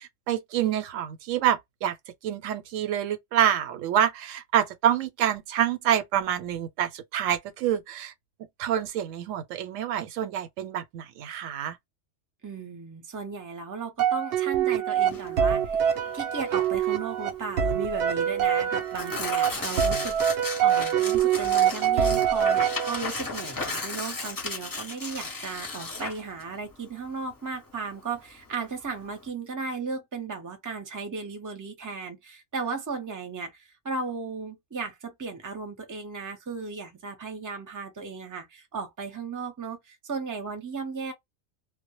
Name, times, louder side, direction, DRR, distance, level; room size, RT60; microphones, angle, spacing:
voice 1, 0.0-1.9 2.2-8.1 8.6-11.8, right 10 dB, 85° right, 0.9 m, -27 dB
voice 2, 12.4-41.1, right 4 dB, 20° right, 0.5 m, -36 dB
sound 1, 14.0-23.3, right 9 dB, 60° right, 0.7 m, -25 dB
Tearing, 15.0-29.3, left 3 dB, 20° left, 0.6 m, -36 dB
2.1 x 2.0 x 2.9 m
omnidirectional pair, 1.3 m